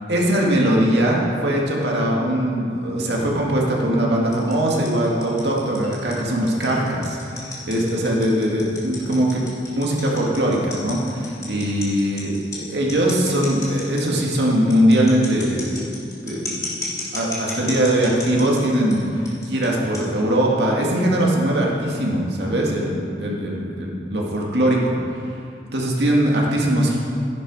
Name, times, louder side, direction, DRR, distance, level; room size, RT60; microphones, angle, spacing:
voice 1, 0.1-9.4 9.7-15.9 16.2-25.0 25.7-27.0, right 1 dB, 70° right, -3 dB, 2.1 m, -21 dB
sound 1, 4.3-18.9 19.3-19.7 19.9-20.0 20.8-20.9, left 3 dB, 20° left, 2.3 m, -33 dB
12.0 x 10.5 x 4.9 m, 2.5 s
head